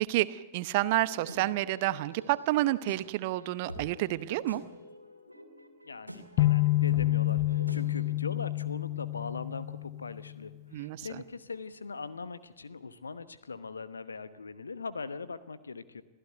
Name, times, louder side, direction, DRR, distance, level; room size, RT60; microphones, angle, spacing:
voice 1, 0.0-4.6 10.7-11.1, right 16 dB, 50° right, 15 dB, 0.9 m, -29 dB
sound 1, 0.9-8.1, equal, 90° right, 2.4 m, -46 dB
voice 2, 5.8-16.0, left 4 dB, 75° left, 13 dB, 1.1 m, -41 dB
sound 2, 6.4-10.4, left 17 dB, 45° left, 0.8 m, -28 dB
25.5 x 15.5 x 9.3 m, 1.2 s
figure-of-eight pair, 90°, 0 cm